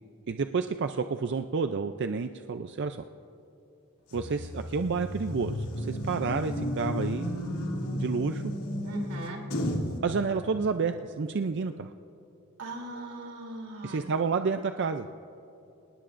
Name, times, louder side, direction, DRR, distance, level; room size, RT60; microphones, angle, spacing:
voice 1, 0.3-3.0 4.1-7.4 7.9-8.4 10.0-11.9 13.8-15.1, right 5 dB, 50° right, 8 dB, 0.4 m, -30 dB
sound 1, 4.1-10.0, left 1 dB, 85° left, 2.3 m, -33 dB
voice 2, 8.8-9.4 12.6-14.1, right 2 dB, 85° right, -1 dB, 3.1 m, -39 dB
26.0 x 19.0 x 2.5 m, 2.8 s
head